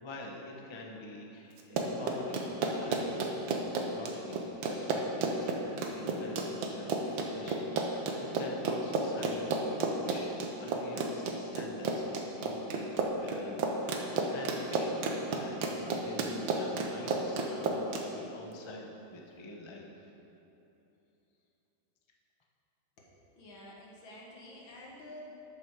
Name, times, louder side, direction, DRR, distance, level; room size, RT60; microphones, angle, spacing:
voice 1, 0.0-3.5 3.8-10.3 10.6-13.6 13.9-15.0 15.3-19.9, left 1 dB, 35° left, 0 dB, 0.4 m, -46 dB
Run, 1.6-18.0, right 3 dB, 80° right, 1.6 m, -32 dB
voice 2, 23.0-25.3, left 1 dB, 80° left, -3 dB, 2.3 m, -50 dB
12.0 x 6.4 x 4.7 m, 3.0 s
omnidirectional pair, 2.1 m